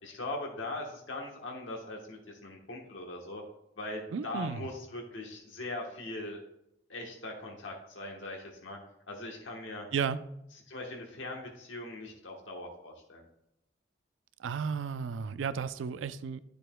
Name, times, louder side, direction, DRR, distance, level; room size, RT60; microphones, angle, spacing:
voice 1, 0.0-3.4 3.8-6.4 6.9-8.8 9.1-9.8 10.7-13.3, left 2 dB, 85° left, 1 dB, 1.1 m, -40 dB
voice 2, 4.1-4.6 9.9-10.2 14.4-16.4, right 6 dB, 85° right, 14 dB, 0.4 m, -33 dB
10.0 x 6.7 x 2.2 m, 0.83 s
head